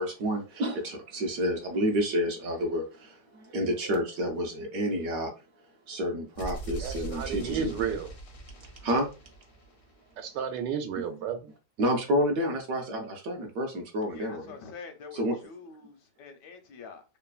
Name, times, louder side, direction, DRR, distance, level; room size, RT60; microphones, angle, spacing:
voice 1, 0.0-5.3 5.9-7.7 8.8-9.1 11.8-14.6 15.1-15.4, equal, 70° right, 0.9 m, -29 dB
sound 1, 6.3-10.2, right 2 dB, 65° left, 0.6 m, -41 dB
voice 2, 6.8-8.1 10.2-11.5, right 7 dB, 85° right, 1.2 m, -32 dB
voice 3, 14.1-17.0, left 5 dB, 80° left, 1.2 m, -45 dB
3.2 x 2.1 x 2.3 m
omnidirectional pair, 1.9 m